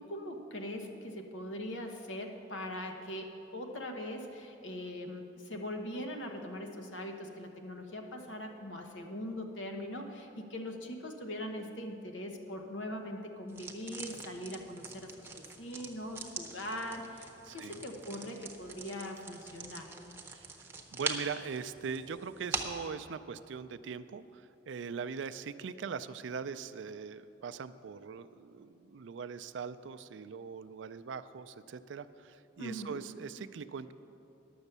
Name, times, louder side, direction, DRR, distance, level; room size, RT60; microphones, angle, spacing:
voice 1, 0.0-19.9 32.6-33.0, left 1 dB, 85° left, 3 dB, 1.1 m, -41 dB
sound 1, 13.5-22.9, right 3 dB, 10° right, 0.7 m, -43 dB
voice 2, 17.4-17.8 20.3-20.5 20.9-33.9, right 6 dB, 75° right, 12 dB, 0.4 m, -41 dB
11.0 x 7.1 x 6.7 m, 2.8 s
head